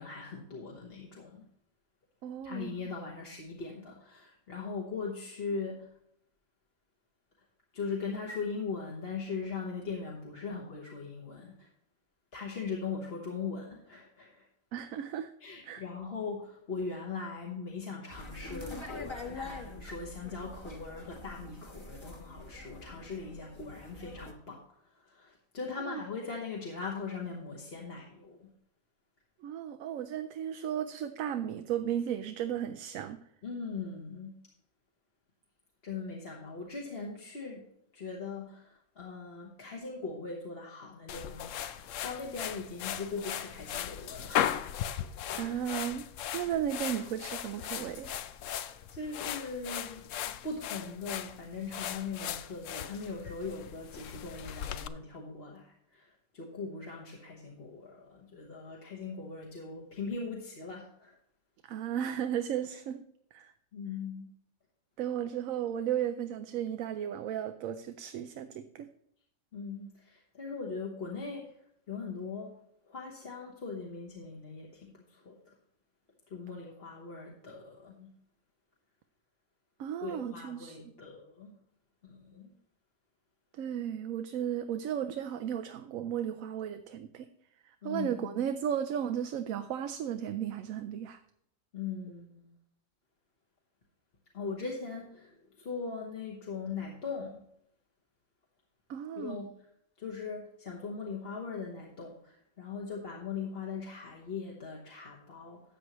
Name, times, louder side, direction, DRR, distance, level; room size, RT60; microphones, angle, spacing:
voice 1, 0.0-1.4 2.4-5.9 7.7-11.7 12.3-14.5 15.4-28.5 33.4-34.3 35.8-37.6 37.9-44.6 48.9-50.1 50.4-61.2 63.7-64.3 65.2-65.3 69.5-71.5 71.9-72.5 72.9-75.5 76.3-78.1 80.0-81.5 82.0-82.5 87.8-88.3 91.7-92.5 94.3-97.4 99.1-99.5 100.0-105.6, left 4 dB, 50° left, -2 dB, 1.5 m, -40 dB
voice 2, 2.2-2.7 14.7-15.3 15.7-15.8 25.8-26.0 29.4-33.2 45.4-46.0 46.3-48.2 61.7-63.0 63.3-63.5 65.0-68.9 79.8-80.8 83.5-87.3 87.7-91.2 98.9-99.4, right 9 dB, 85° right, 9 dB, 1.0 m, -34 dB
sound 1, 18.1-24.3, left 2 dB, 20° left, 1.1 m, -45 dB
sound 2, 41.1-54.9, left 10 dB, 75° left, 0.9 m, -37 dB
13.0 x 8.0 x 3.0 m, 0.72 s
omnidirectional pair, 1.4 m